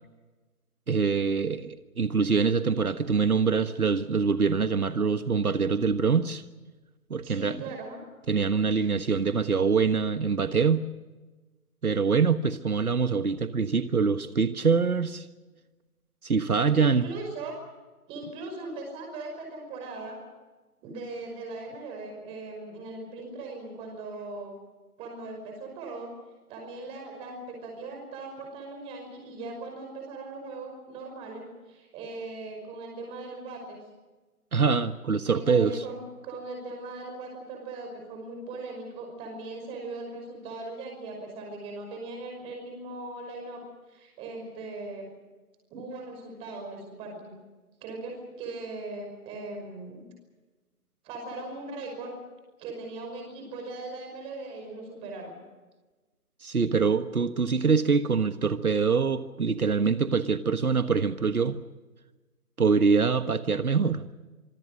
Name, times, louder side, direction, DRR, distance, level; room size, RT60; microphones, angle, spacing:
voice 1, 0.9-6.4 7.1-7.6 8.3-10.8 11.8-15.3 16.2-17.0 34.5-35.8 56.4-61.6 62.6-64.0, right 5 dB, 75° right, 10 dB, 1.5 m, -24 dB
voice 2, 7.2-8.0 8.8-9.0 16.7-17.6 18.1-20.2 20.8-24.5 25.0-26.1 26.5-33.8 35.3-43.6 43.9-45.1 45.7-47.4 47.8-50.0 51.0-52.2 52.6-55.4, right 3 dB, 10° right, 2 dB, 5.5 m, -39 dB
26.5 x 22.0 x 6.3 m, 1.2 s
figure-of-eight pair, 155°, 44 cm